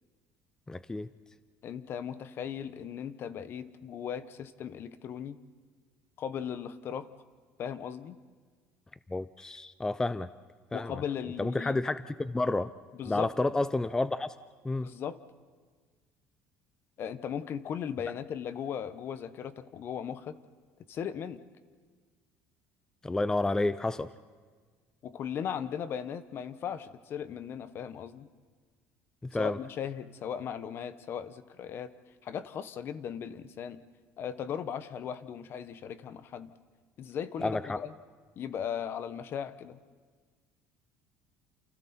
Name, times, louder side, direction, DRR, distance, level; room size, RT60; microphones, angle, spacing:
voice 1, 0.7-1.1 9.1-10.3 10.7-10.9 11.4-12.7 13.1-14.3 14.6-14.9 23.0-24.1 29.3-29.6 37.4-37.8, left 2 dB, 10° left, 13 dB, 0.6 m, -30 dB
voice 2, 1.6-5.4 6.2-7.1 7.6-8.2 10.7-11.8 12.9-13.3 14.8-15.2 17.0-20.4 20.9-21.4 25.0-28.3 29.3-31.9 32.2-33.8 34.2-36.5 37.0-37.9 38.4-39.8, left 8 dB, 50° left, 12 dB, 1.2 m, -37 dB
29.0 x 28.5 x 4.5 m, 1.6 s
cardioid pair, 110°, 5 cm